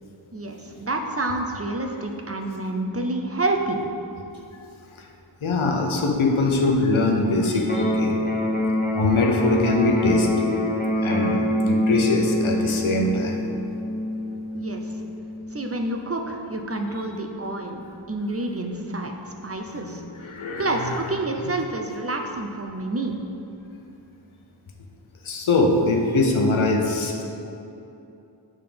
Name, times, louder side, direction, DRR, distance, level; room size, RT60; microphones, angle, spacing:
voice 1, 0.3-3.8 14.5-14.8 15.5-17.8 18.1-20.0 20.6-23.2, right 2 dB, 30° right, 3 dB, 0.6 m, -28 dB
voice 2, 5.4-8.2 8.9-10.6 11.0-13.4 19.8-21.0 25.2-27.3, left 2 dB, 85° left, 1 dB, 0.8 m, -22 dB
Electric guitar, 7.6-15.6, left 1 dB, 20° left, 0.7 m, -25 dB
6.7 x 3.7 x 5.2 m, 2.8 s
wide cardioid pair, 50°, 47 cm